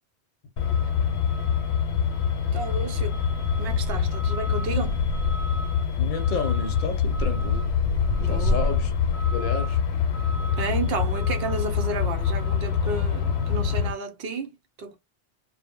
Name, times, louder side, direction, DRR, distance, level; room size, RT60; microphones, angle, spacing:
Truck, 0.6-13.9, left 6 dB, 85° left, 0.9 m, -25 dB
voice 1, 2.5-3.2 3.6-5.0 8.2-8.7 10.6-14.5 14.8-15.0, right 3 dB, 70° right, 0.8 m, -32 dB
voice 2, 6.0-7.7 8.3-8.9 9.3-9.8, left 5 dB, 50° left, 0.7 m, -31 dB
2.1 x 2.0 x 3.5 m
omnidirectional pair, 1.1 m